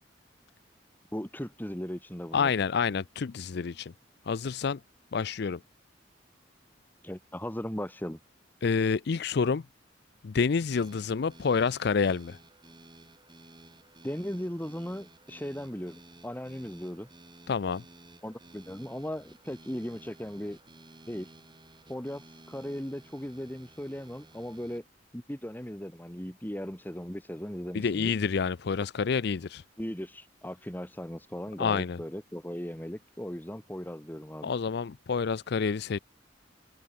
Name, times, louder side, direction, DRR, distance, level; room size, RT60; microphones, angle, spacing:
voice 1, 1.1-2.5 7.0-8.2 14.0-17.1 18.2-20.6 21.1-21.3 21.9-24.8 25.1-28.1 29.8-34.5, equal, 10° left, 1.9 m, -37 dB
voice 2, 2.3-3.9 4.3-4.8 5.1-5.6 8.6-9.6 10.2-12.4 17.5-17.8 27.7-29.6 31.6-32.0 34.4-36.0, left 5 dB, 60° left, 0.5 m, -28 dB
sound 1, 10.7-24.8, right 2 dB, 25° right, 5.7 m, -54 dB
head